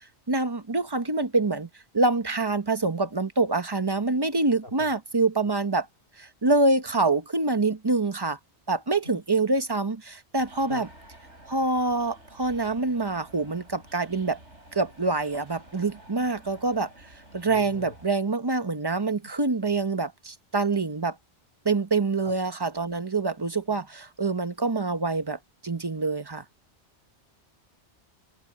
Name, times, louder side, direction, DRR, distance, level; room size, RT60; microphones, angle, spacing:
voice 1, 0.3-1.7 1.9-5.9 6.2-8.4 8.7-10.9 11.5-14.4 14.7-16.9 17.3-21.2 21.6-26.4, right 3 dB, 20° right, 1.0 m, -26 dB
voice 2, 4.6-4.9 10.7-10.9 17.5-18.0 19.2-19.3 22.2-22.3, left 1 dB, 55° left, 5.3 m, -42 dB
sound 1, 10.4-18.1, right 1 dB, 85° right, 8.3 m, -51 dB
omnidirectional pair, 1.2 m